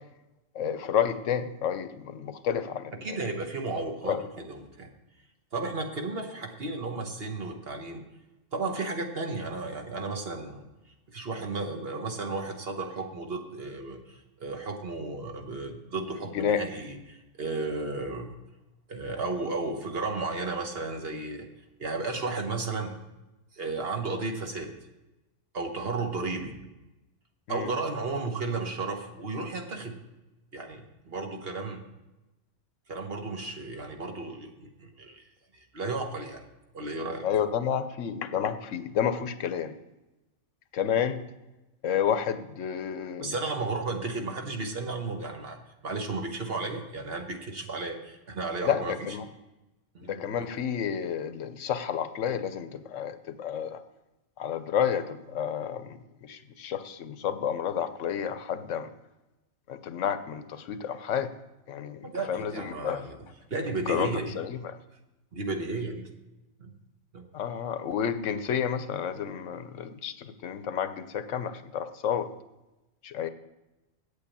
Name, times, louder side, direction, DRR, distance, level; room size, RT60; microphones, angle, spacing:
voice 1, 0.5-3.2 4.0-4.2 16.3-16.6 27.5-27.7 37.2-39.7 40.7-41.2 41.8-43.3 48.7-49.2 50.1-53.8 54.4-58.9 59.7-61.3 61.7-63.0 63.9-64.1 64.4-64.7 67.3-72.3 73.0-73.3, left 8 dB, 80° left, 11 dB, 1.1 m, -30 dB
voice 2, 2.9-4.9 5.5-8.0 8.5-10.7 11.1-18.3 18.9-21.5 21.8-22.9 23.5-24.7 25.5-26.6 27.5-30.0 30.5-31.8 32.9-35.2 35.5-36.4 36.7-37.3 43.2-45.6 45.8-49.2 49.9-50.3 62.0-63.2 63.5-64.4 65.3-66.1 66.6-66.7 67.1-67.3, right 3 dB, 50° right, 4 dB, 1.4 m, -34 dB
8.5 x 6.6 x 8.5 m, 1.0 s
omnidirectional pair, 1.3 m